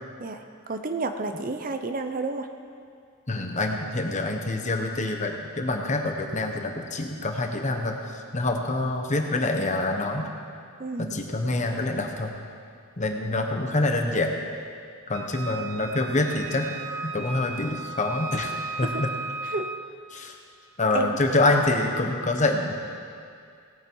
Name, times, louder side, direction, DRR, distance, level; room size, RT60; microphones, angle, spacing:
voice 1, 0.7-2.5 10.8-11.2 18.8-19.0 19.4-19.7 20.9-21.4, right 3 dB, 40° right, 7 dB, 0.6 m, -31 dB
voice 2, 3.3-10.3 11.0-12.3 13.0-14.4 15.1-16.7 17.0-18.5 18.8-19.1 20.1-20.4 20.8-22.7, left 2 dB, 35° left, 3 dB, 1.0 m, -26 dB
Wind instrument woodwind instrument, 15.1-19.8, right 3 dB, 90° right, 0.9 m, -36 dB
18.0 x 8.8 x 4.7 m, 2.3 s
head